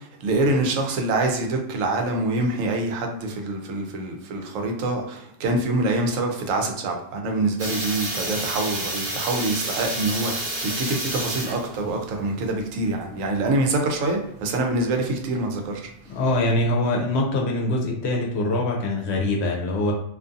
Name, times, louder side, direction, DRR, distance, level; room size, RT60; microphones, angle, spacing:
voice 1, 0.0-15.8, right 2 dB, 90° right, 2 dB, 1.0 m, -25 dB
sound 1, 7.6-16.4, right 1 dB, 35° right, 0.6 m, -31 dB
voice 2, 16.1-19.9, left 1 dB, 65° left, 0 dB, 0.8 m, -23 dB
2.5 x 2.4 x 2.5 m, 0.76 s
omnidirectional pair, 1.3 m